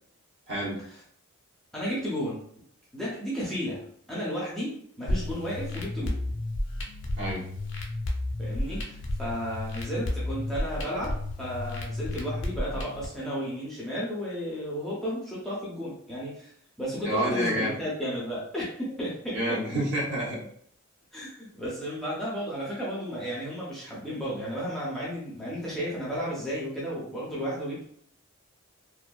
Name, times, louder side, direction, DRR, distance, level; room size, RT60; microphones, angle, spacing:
voice 1, 0.5-0.8 7.2-7.4 17.0-17.8 19.3-20.4, equal, 55° right, -5 dB, 0.9 m, -28 dB
voice 2, 1.7-2.4 2.9-6.2 8.4-16.5 16.8-19.6 21.1-27.8, equal, ahead, -7 dB, 0.5 m, -33 dB
sound 1, 5.1-13.1, left 1 dB, 55° left, 0.5 m, -32 dB
2.5 x 2.2 x 2.2 m, 0.65 s
head